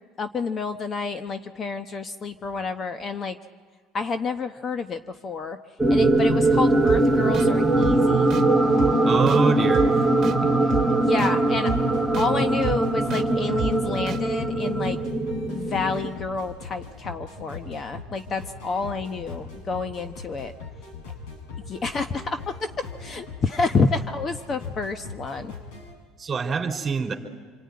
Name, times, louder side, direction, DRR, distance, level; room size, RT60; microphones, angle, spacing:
voice 1, 0.2-3.4 3.9-5.6 5.9-8.4 11.0-11.7 12.2-15.0 15.5-20.5 21.7-22.7 23.0-25.5, left 4 dB, 30° left, 9 dB, 1.0 m, -29 dB
sound 1, 5.8-16.1, right 2 dB, 5° left, 2.3 m, -21 dB
sound 2, 6.9-7.0 7.3-7.5 7.8-8.0 8.3-8.4 8.8-8.9 9.3-9.4 9.7-9.9 10.2-10.4 10.7-10.8 11.2-11.3 11.7-11.8 12.1-12.3 12.6-12.8 13.1-13.2 13.6-13.7 14.1-14.2, right 9 dB, 45° right, 1.5 m, -29 dB
voice 2, 9.1-9.9 10.4-10.9 26.2-27.1, right 5 dB, 25° right, 6 dB, 3.4 m, -25 dB
sound 3, 11.7-25.9, left 4 dB, 85° left, 7.6 m, -40 dB
26.0 x 24.0 x 9.6 m, 1.5 s
cardioid pair, 125°, 0 cm